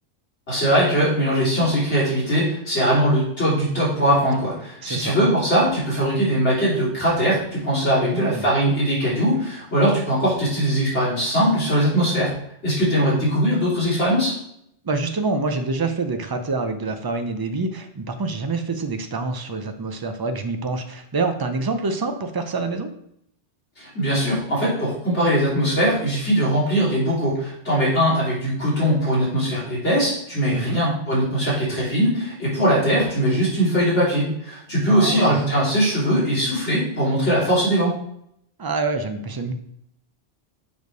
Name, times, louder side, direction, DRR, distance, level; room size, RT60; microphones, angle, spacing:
voice 1, 0.5-12.3 12.6-14.3 23.8-37.9, equal, 85° left, -8 dB, 3.3 m, -21 dB
voice 2, 4.8-5.1 8.1-8.5 14.8-22.9 30.5-30.8 34.9-35.4 38.6-39.5, right 3 dB, 35° right, 7 dB, 0.4 m, -26 dB
7.0 x 3.2 x 5.2 m, 0.75 s
omnidirectional pair, 1.2 m